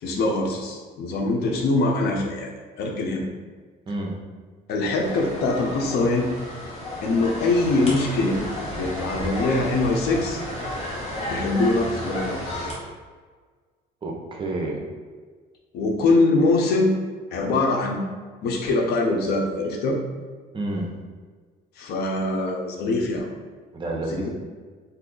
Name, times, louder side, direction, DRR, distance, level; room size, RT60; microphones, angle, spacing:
voice 1, 0.0-2.5 2.8-3.2 4.7-6.3 7.0-8.4 8.7-10.4 11.3-12.7 15.7-16.9 17.3-18.0 18.4-20.0 21.8-23.3 23.9-24.3, left 2 dB, 70° left, 1 dB, 0.6 m, -23 dB
voice 2, 3.9-4.2 14.0-14.8 20.5-20.9 23.7-24.3, right 2 dB, 30° right, -1 dB, 0.7 m, -29 dB
sound 1, 5.0-12.7, left 1 dB, 40° left, 1.0 m, -32 dB
2.8 x 2.3 x 3.7 m, 1.5 s
cardioid pair, 110°, 17 cm